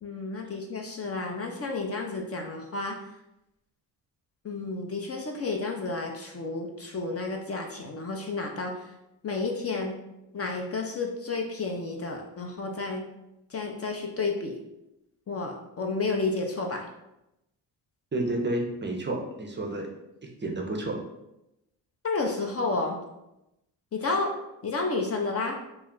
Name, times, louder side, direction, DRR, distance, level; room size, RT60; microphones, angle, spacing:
voice 1, 0.0-2.9 4.4-8.8 9.2-9.9 10.3-13.0 13.5-14.5 15.3-16.9 22.0-23.0 23.9-24.3 24.6-25.6, left 3 dB, 35° left, 1 dB, 0.5 m, -31 dB
voice 2, 18.1-19.9 20.4-21.0, right 2 dB, 25° right, 1 dB, 0.5 m, -30 dB
2.3 x 2.1 x 3.6 m, 0.89 s
supercardioid pair, 55°, 46 cm